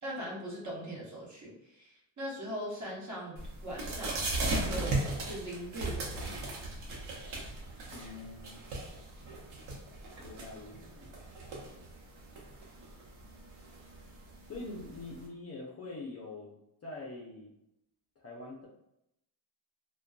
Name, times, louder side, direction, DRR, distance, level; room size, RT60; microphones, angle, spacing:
voice 1, 0.0-4.3 4.6-6.5, equal, 35° right, -5 dB, 1.0 m, -41 dB
sound 1, 3.4-15.2, right 2 dB, 75° right, 0.8 m, -38 dB
voice 2, 7.9-8.6 10.2-11.1 14.5-17.5 18.2-18.7, left 2 dB, 30° left, -3 dB, 0.5 m, -44 dB
2.5 x 2.2 x 2.3 m, 0.82 s
cardioid pair, 100°, 50 cm